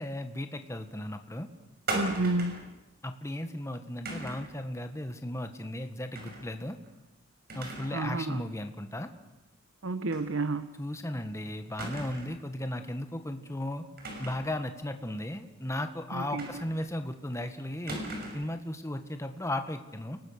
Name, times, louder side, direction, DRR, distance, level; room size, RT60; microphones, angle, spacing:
voice 1, 0.0-1.5 3.0-6.8 7.5-9.1 10.8-13.8 14.2-18.0 18.3-20.2, left 1 dB, 15° left, 7 dB, 1.5 m, -36 dB
sound 1, 1.9-2.7 4.1-4.5 6.1-6.5 6.8-6.9 7.5-8.0 8.4-8.5 10.1-10.3 10.6-10.7 11.8-12.4 14.0-14.5 16.4-16.9 17.9-18.5, right 2 dB, 50° right, 6.1 m, -37 dB
voice 2, 1.9-2.6 7.9-8.4 9.8-10.7 16.1-16.6, right 2 dB, 75° right, 12 dB, 0.9 m, -31 dB
29.5 x 19.5 x 6.6 m, 0.99 s
head